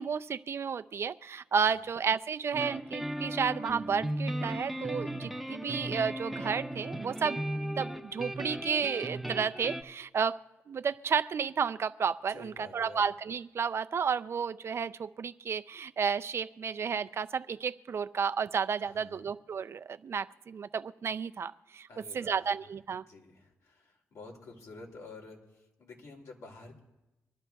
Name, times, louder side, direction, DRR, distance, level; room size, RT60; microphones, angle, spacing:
voice 1, 0.0-7.4 7.8-10.4 10.7-21.9 22.1-23.0, right 6 dB, 50° right, 11 dB, 0.4 m, -32 dB
sound 1, 2.5-9.8, right 1 dB, ahead, 0.8 m, -36 dB
voice 2, 12.3-13.1 18.8-19.3 21.9-22.6 22.9-26.8, left 3 dB, 70° left, 1 dB, 2.7 m, -50 dB
25.0 x 11.5 x 2.3 m, 1.0 s
cardioid pair, 70°, 5 cm